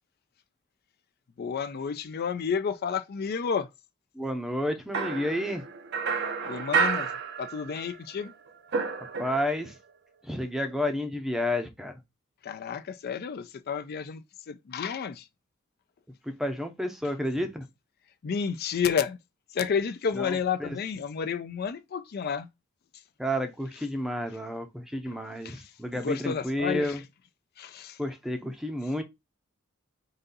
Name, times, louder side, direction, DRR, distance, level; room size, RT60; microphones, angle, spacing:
voice 1, 1.4-3.7 6.4-8.3 12.4-15.3 18.2-19.2 19.5-22.5 22.9-23.0 25.1-25.2 25.4-27.0 27.6-28.0, left 6 dB, 50° left, 0.4 m, -31 dB
voice 2, 4.1-5.6 9.2-9.8 10.2-12.0 16.2-17.7 20.2-20.7 23.2-27.0 28.0-29.0, left 1 dB, ahead, 0.6 m, -31 dB
sound 1, 4.9-8.0 8.2-9.7, right 5 dB, 55° right, 0.6 m, -30 dB
4.0 x 2.6 x 3.8 m
head